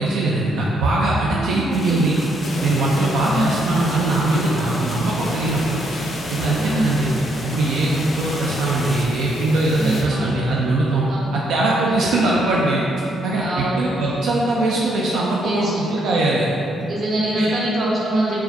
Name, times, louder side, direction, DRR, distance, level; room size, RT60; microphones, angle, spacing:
voice 1, 0.0-2.2 2.6-5.8 6.3-7.1 7.4-12.8 13.2-16.5 17.4-17.6, right 2 dB, 80° right, -4 dB, 0.3 m, -21 dB
voice 2, 1.3-2.0 3.2-3.5 6.5-6.9 9.8-10.3 11.1-11.3 11.9-12.0 13.3-13.7 15.4-15.7 16.9-18.4, right 1 dB, 45° right, -5 dB, 0.8 m, -24 dB
sound 1, 1.7-9.1, left 1 dB, 20° left, 0.4 m, -33 dB
sound 2, 2.4-10.0, left 1 dB, 75° left, 0.5 m, -32 dB
4.4 x 2.2 x 2.7 m, 2.9 s
cardioid pair, 90°, 0 cm